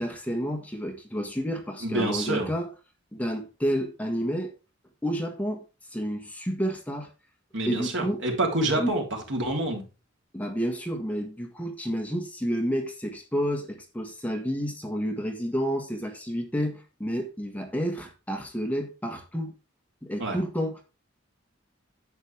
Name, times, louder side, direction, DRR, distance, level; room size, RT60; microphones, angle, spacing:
voice 1, 0.0-2.7 3.1-4.5 5.0-5.6 5.9-7.1 7.7-8.2 8.8-8.9 10.3-19.5 20.0-20.8, equal, 10° left, 1.6 m, -30 dB
voice 2, 1.8-2.5 7.5-9.0 9.3-9.9 20.2-20.4, right 2 dB, 65° right, 3.5 m, -27 dB
10.5 x 8.1 x 3.5 m
head